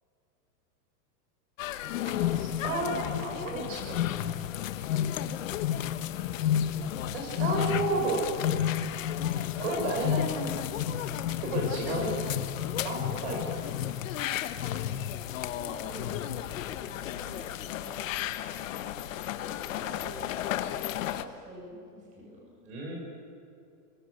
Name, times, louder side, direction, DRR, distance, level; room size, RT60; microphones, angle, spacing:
sound 1, 1.6-21.2, left 11 dB, 55° left, 1.3 m, -32 dB
voice 1, 2.0-4.3 7.1-8.2 9.6-10.5 11.4-12.2 12.5-12.6 12.8-13.5 22.6-23.0, right 3 dB, 45° right, 0 dB, 6.6 m, -32 dB
voice 2, 15.0-16.2 17.1-18.3 19.4-20.3 21.1-22.6, equal, 15° right, -4 dB, 7.3 m, -48 dB
27.5 x 24.0 x 6.6 m, 2.7 s
supercardioid pair, 180°, 46 cm